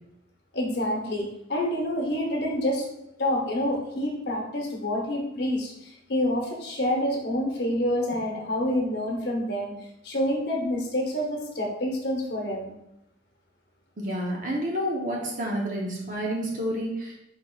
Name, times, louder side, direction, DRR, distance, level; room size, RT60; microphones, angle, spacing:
voice 1, 0.5-2.8 3.2-9.7 10.0-12.8, left 1 dB, 60° left, 0 dB, 0.8 m, -27 dB
voice 2, 14.0-17.1, equal, 45° right, -2 dB, 0.7 m, -29 dB
5.1 x 4.0 x 2.3 m, 0.85 s
head